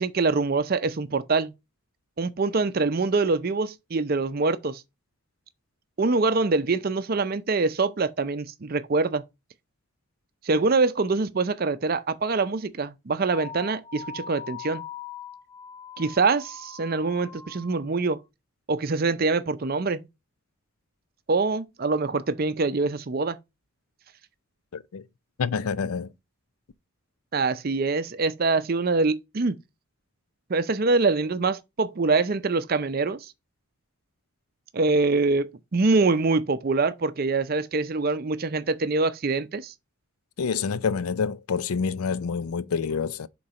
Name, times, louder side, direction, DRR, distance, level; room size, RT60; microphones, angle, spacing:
voice 1, 0.0-1.5 2.2-4.8 6.0-9.2 10.4-14.8 16.0-18.2 18.7-20.1 21.3-23.4 27.3-29.6 30.5-33.3 34.7-39.7, right 3 dB, 40° right, 0.5 m, -24 dB
sound 1, 13.3-17.9, left 6 dB, 20° left, 0.6 m, -41 dB
voice 2, 24.7-25.0 25.4-26.1 40.4-43.3, left 5 dB, 80° left, 0.5 m, -27 dB
5.6 x 3.9 x 4.8 m
head